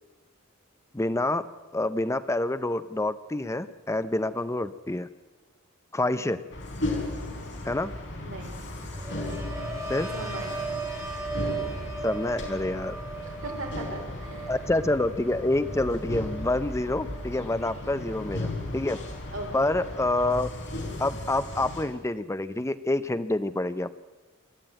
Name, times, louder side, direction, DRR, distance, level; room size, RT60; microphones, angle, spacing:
voice 1, 0.9-1.5 1.7-5.1 5.9-6.4 7.6-7.9 9.9-10.1 12.0-13.0 14.5-19.0 19.5-20.5 21.0-24.0, left 2 dB, 15° left, 13 dB, 0.6 m, -27 dB
sound 1, 6.5-21.8, left 1 dB, 60° left, 4.7 m, -36 dB
voice 2, 8.1-8.6 10.1-10.6 13.2-14.7 19.3-19.7, right 2 dB, 70° right, 1 dB, 5.0 m, -39 dB
sound 2, 8.9-18.6 19.0-19.4, right 4 dB, 15° right, 3.0 m, -38 dB
22.0 x 14.0 x 8.9 m, 1.2 s
head